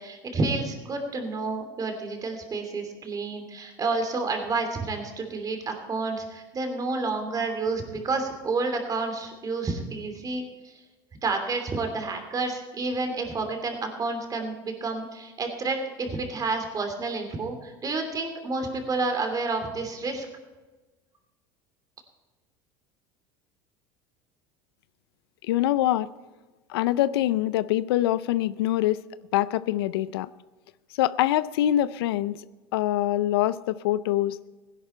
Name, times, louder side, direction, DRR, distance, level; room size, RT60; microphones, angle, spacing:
voice 1, 0.0-10.7 11.2-20.3, right 3 dB, 30° right, 5 dB, 2.8 m, -30 dB
voice 2, 25.5-26.1 26.7-29.0 29.3-30.3 30.9-32.4 32.7-34.4, left 13 dB, 85° left, 17 dB, 0.4 m, -24 dB
16.5 x 11.0 x 4.4 m, 1.2 s
supercardioid pair, 100°, 13 cm